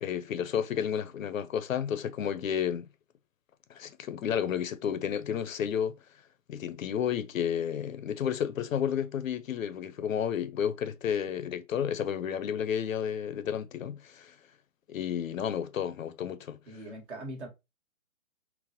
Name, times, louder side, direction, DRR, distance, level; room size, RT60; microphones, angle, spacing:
voice 1, 0.0-2.9 3.7-5.9 6.5-14.3 14.9-16.6, left 8 dB, 70° left, 0.5 m, -31 dB
voice 2, 16.7-17.5, right 1 dB, 55° right, 1.4 m, -41 dB
4.0 x 2.1 x 2.7 m
hypercardioid pair, 160°, 42 cm